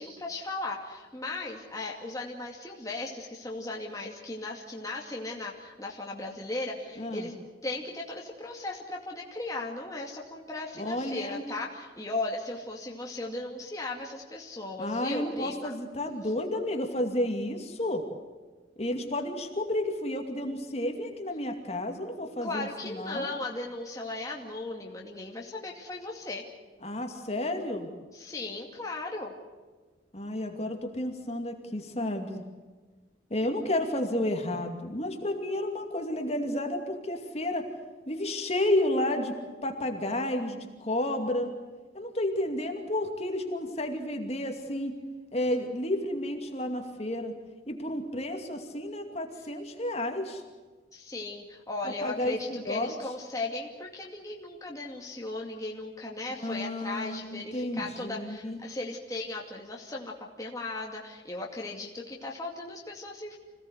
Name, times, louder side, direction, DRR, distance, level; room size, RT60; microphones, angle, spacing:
voice 1, 0.0-7.4 7.6-15.7 22.4-26.4 28.1-29.3 50.9-63.4, left 2 dB, 20° left, -1 dB, 2.4 m, -37 dB
voice 2, 7.0-7.3 10.8-11.4 14.8-18.0 18.8-23.3 26.8-27.9 30.1-32.4 33.3-37.7 38.1-39.4 39.6-41.5 41.9-44.9 45.3-47.3 47.7-50.4 51.8-52.9 56.4-58.6, left 1 dB, 35° left, 4 dB, 2.5 m, -31 dB
26.5 x 17.5 x 8.2 m, 1.4 s
head